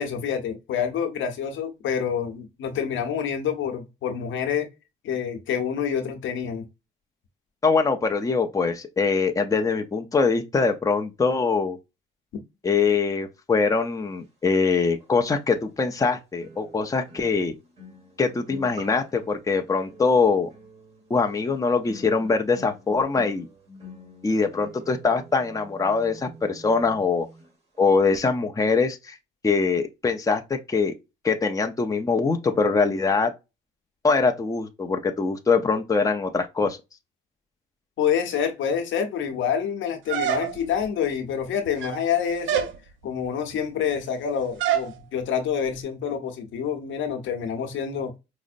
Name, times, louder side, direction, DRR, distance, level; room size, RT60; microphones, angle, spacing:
voice 1, 0.0-4.7 5.0-6.7 12.3-12.4 38.0-42.7 43.0-48.1, left 8 dB, 75° left, 0.9 m, -27 dB
voice 2, 7.6-11.8 12.6-17.5 18.2-20.5 21.1-23.5 24.2-27.3 27.8-29.2 29.4-30.9 31.2-33.3 34.0-36.8, left 4 dB, 15° left, 0.6 m, -23 dB
sound 1, 15.0-15.1 16.4-27.5 27.7-28.0, equal, 30° right, 1.6 m, -47 dB
sound 2, 40.1-40.8 41.7-42.1 42.5-42.8 44.6-44.9, right 10 dB, 80° right, 0.6 m, -26 dB
5.0 x 2.0 x 2.5 m
cardioid pair, 90°, 20 cm